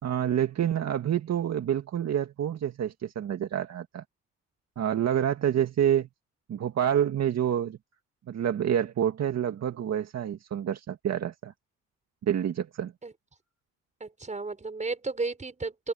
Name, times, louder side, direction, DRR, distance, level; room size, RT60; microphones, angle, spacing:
voice 1, 0.0-4.0 4.8-6.1 6.5-7.8 8.3-11.5 12.2-12.9, right 10 dB, 60° right, 2.0 m, -28 dB
voice 2, 14.0-15.9, right 3 dB, 25° right, 5.3 m, -33 dB
cardioid pair, 90°, 30 cm